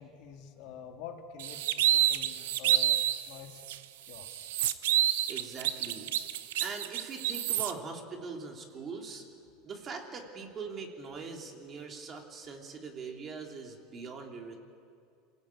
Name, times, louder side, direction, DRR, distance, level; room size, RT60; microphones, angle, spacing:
voice 1, 0.0-3.0 3.3-3.6 4.0-4.5, left 7 dB, 65° left, 4 dB, 2.3 m, -47 dB
sound 1, 1.4-3.2 3.7-3.8 4.1-7.7, right 12 dB, 85° right, 0.8 m, -28 dB
voice 2, 5.3-6.1 6.6-9.3 9.6-14.6, right 4 dB, 35° right, 2 dB, 3.2 m, -42 dB
26.5 x 17.0 x 8.6 m, 2.4 s
supercardioid pair, 125°, 0 cm